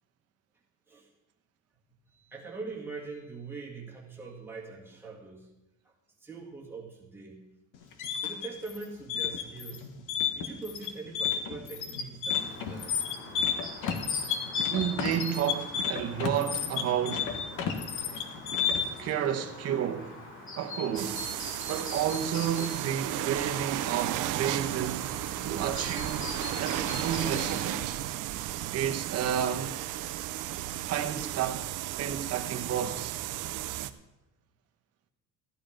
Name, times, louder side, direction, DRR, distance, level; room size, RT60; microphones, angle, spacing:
voice 1, 2.1-5.5 6.2-7.5 8.2-9.9 10.3-13.0, right 4 dB, 5° right, 2.1 m, -42 dB
sound 1, 7.7-19.1, left 7 dB, 65° left, 1.4 m, -31 dB
Chirp tweet, 12.3-27.8, left 2 dB, 35° left, 2.5 m, -43 dB
voice 2, 14.7-17.5 19.0-20.2 20.6-21.3 21.7-25.1 25.4-26.3 26.6-28.0 28.7-29.8 30.8-31.7 32.0-33.2, right 9 dB, 50° right, 1.1 m, -31 dB
sound 2, 21.0-33.9, right 13 dB, 65° right, 0.7 m, -34 dB
14.5 x 10.0 x 5.1 m
cardioid pair, 180°, 33 cm